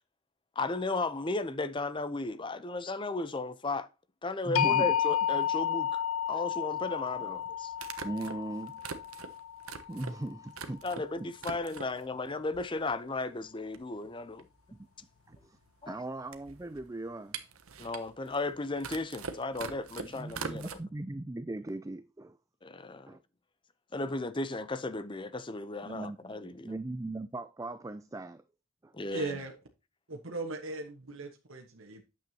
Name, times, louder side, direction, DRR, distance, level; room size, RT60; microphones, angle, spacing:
voice 1, 0.6-3.9 4.2-7.7 10.8-14.5 15.8-16.0 17.8-20.8 22.6-23.2 23.9-26.7 28.9-29.4, left 3 dB, 25° left, 0.6 m, -35 dB
voice 2, 4.4-4.9 8.0-8.8 9.9-10.8 11.2-11.3 14.7-14.8 15.3-15.6 15.9-17.4 20.0-22.4 23.1-23.2 25.8-26.3 26.6-28.4 28.8-28.9, right 2 dB, 15° right, 0.4 m, -38 dB
sound 1, 4.6-10.5, left 9 dB, 85° left, 0.5 m, -31 dB
sound 2, 4.9-5.0 6.8-6.9 7.8-11.1 11.3-12.1 12.5-13.2 13.4-13.5 13.7-20.8, right 5 dB, 85° right, 1.1 m, -43 dB
voice 3, 29.1-29.5 30.1-32.0, right 2 dB, 70° right, 1.3 m, -38 dB
9.2 x 7.6 x 2.8 m
head